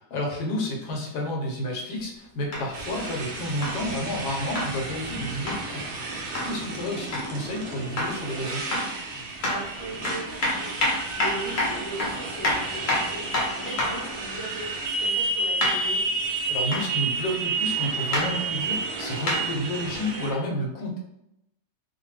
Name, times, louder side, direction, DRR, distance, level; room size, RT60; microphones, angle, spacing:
voice 1, 0.1-8.6 16.5-21.0, left 1 dB, 80° left, 0 dB, 1.2 m, -31 dB
sound 1, 2.5-2.7 3.6-3.8 4.5-4.7 5.5-5.7 6.3-6.5 7.1-7.3 8.0-8.2 8.7-9.0 9.4-9.6 10.0-14.1 15.6-15.8 16.7-16.9 18.1-18.3 19.3-19.5 20.3-20.4, left 1 dB, 55° left, 0.7 m, -27 dB
Motorcycle, 2.7-20.3, right 3 dB, 75° right, 0.6 m, -31 dB
voice 2, 9.4-16.1, right 1 dB, 25° left, -6 dB, 0.4 m, -38 dB
2.7 x 2.2 x 3.1 m, 0.82 s
omnidirectional pair, 1.7 m